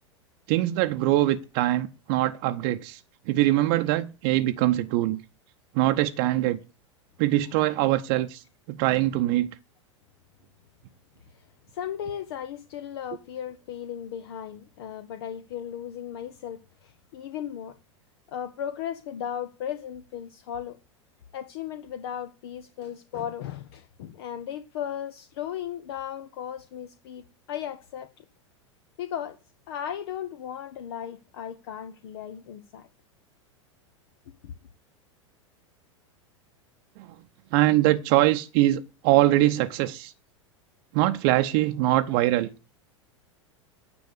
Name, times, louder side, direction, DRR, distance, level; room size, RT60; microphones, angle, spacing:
voice 1, 0.5-3.0 3.3-5.2 5.7-6.6 7.2-8.4 8.7-9.5 37.0-37.1 37.5-40.1 40.9-42.5, right 15 dB, 45° right, 0.8 m, -23 dB
voice 2, 11.7-17.7 18.3-20.8 21.3-28.2 29.0-29.4 29.7-32.9 34.4-34.5, left 9 dB, 55° left, 1.0 m, -36 dB
9.8 x 6.2 x 8.1 m
figure-of-eight pair, 90°, 16 cm